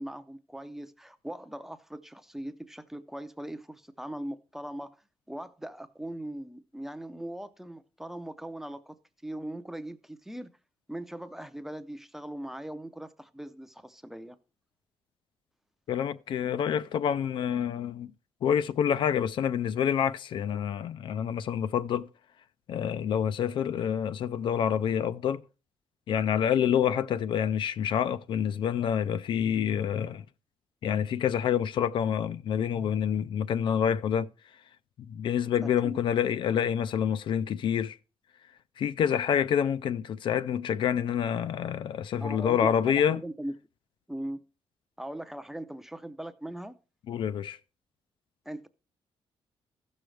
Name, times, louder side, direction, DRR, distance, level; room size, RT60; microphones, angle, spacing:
voice 1, 0.0-4.9 5.3-9.0 9.2-10.5 10.9-14.4 35.6-36.0 42.2-43.5 44.1-44.4 45.0-46.8 48.5-48.7, right 1 dB, 5° right, 0.5 m, -40 dB
voice 2, 15.9-18.1 18.4-22.1 22.7-25.4 26.1-30.2 30.8-34.3 35.1-38.0 38.8-43.2 47.1-47.6, left 8 dB, 55° left, 0.4 m, -27 dB
15.5 x 6.3 x 3.2 m
cardioid pair, 170°, 10 cm